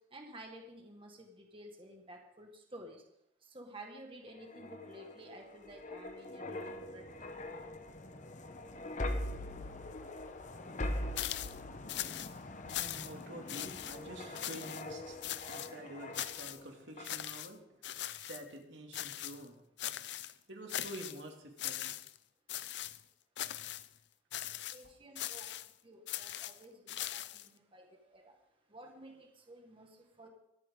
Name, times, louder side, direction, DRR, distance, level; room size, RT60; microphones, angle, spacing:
voice 1, 0.1-3.0 3.5-7.0 24.7-25.5 25.8-27.9 28.1-28.3 28.7-30.3, right 1 dB, 30° right, 2 dB, 1.7 m, -52 dB
sound 1, 4.3-16.6 17.0-17.2, left 1 dB, 40° left, 0.9 m, -42 dB
sound 2, 11.2-11.6 11.9-12.3 12.7-13.2 13.5-14.0 14.3-14.8 15.2-15.7 16.1-16.6 17.0-17.5 17.8-18.4 18.9-19.4 19.8-20.3 20.7-21.2 21.6-22.2 22.5-23.0 23.4-23.9 24.3-24.8 25.2-25.7 26.1-27.5, left 12 dB, 65° left, 0.5 m, -40 dB
voice 2, 12.2-19.5 20.1-21.9, right 1 dB, 80° right, 2 dB, 2.4 m, -49 dB
23.5 x 9.1 x 3.8 m, 0.80 s
head